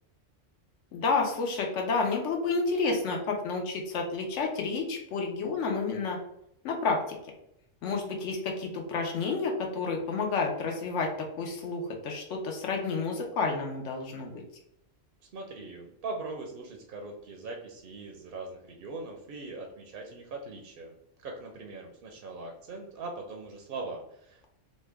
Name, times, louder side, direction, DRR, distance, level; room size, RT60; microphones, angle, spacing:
voice 1, 0.9-6.2 6.6-7.2 7.8-14.3, left 4 dB, 80° left, 1 dB, 0.9 m, -30 dB
voice 2, 15.2-24.4, right 3 dB, 60° right, 2 dB, 0.6 m, -41 dB
3.0 x 2.2 x 3.3 m, 0.76 s
omnidirectional pair, 1.3 m